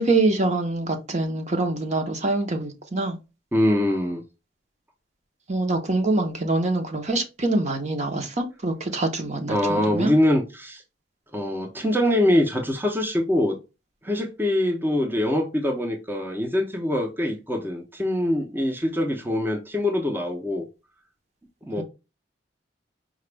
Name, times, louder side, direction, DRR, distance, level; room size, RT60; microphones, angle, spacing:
voice 1, 0.0-3.2 5.5-10.1 21.8-21.9, right 2 dB, 40° right, 0.9 m, -25 dB
voice 2, 3.5-4.2 9.5-10.8 11.3-13.6 14.0-20.6 21.7-21.8, left 1 dB, 10° right, 0.7 m, -23 dB
4.9 x 2.4 x 3.3 m
head